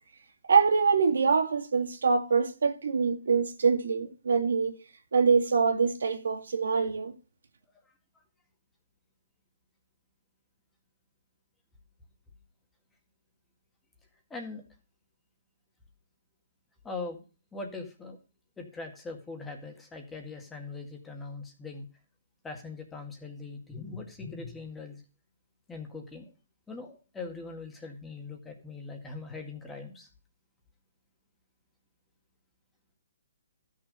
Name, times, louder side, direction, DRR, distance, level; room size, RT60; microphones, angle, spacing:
voice 1, 0.5-4.8 5.1-7.1, right 5 dB, 80° right, 2.0 m, -24 dB
voice 2, 14.3-14.6 16.8-17.2 17.5-18.2 18.6-21.9 22.4-25.0 25.7-26.3 26.7-30.1, left 3 dB, 10° left, 1.9 m, -41 dB
13.0 x 6.6 x 5.2 m
hypercardioid pair, 160°, 0 cm